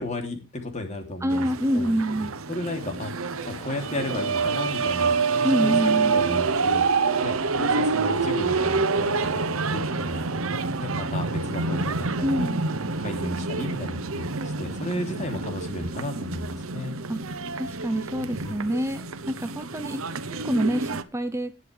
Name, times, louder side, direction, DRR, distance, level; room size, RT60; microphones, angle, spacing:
voice 1, 0.0-1.5 1.7-1.9 2.5-5.2 5.6-6.8 7.2-10.3 10.8-12.5 13.0-17.0 18.2-18.6, left 1 dB, 35° left, 4 dB, 3.2 m, -34 dB
voice 2, 1.2-2.3 5.4-6.2 12.2-12.6 17.1-17.2 17.5-20.0 20.4-21.5, right 1 dB, 15° right, 9 dB, 0.7 m, -26 dB
sound 1, 1.3-21.0, right 4 dB, 90° right, 1.0 m, -27 dB
Crowd, 3.3-11.3, right 1 dB, 20° left, 4.9 m, -46 dB
19.0 x 7.7 x 3.5 m, 0.30 s
head